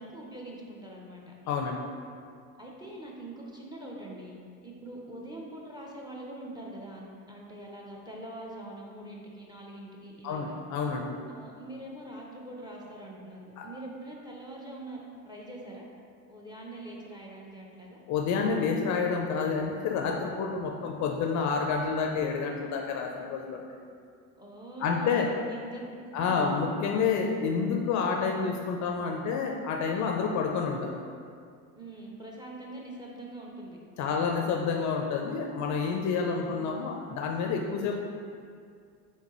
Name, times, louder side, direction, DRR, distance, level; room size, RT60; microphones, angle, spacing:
voice 1, 0.0-1.3 2.6-10.6 11.3-15.0 15.2-15.8 16.3-18.0 20.8-21.0 24.4-25.9 26.2-26.7 31.7-34.2 36.2-36.6, right 1 dB, 10° right, -2 dB, 0.5 m, -43 dB
voice 2, 1.5-1.8 10.2-11.2 13.6-13.7 18.1-23.6 24.8-25.3 26.1-31.0 34.0-37.9, left 5 dB, 40° left, 2 dB, 0.4 m, -29 dB
4.4 x 3.6 x 3.0 m, 2.2 s
supercardioid pair, 95°, 44 cm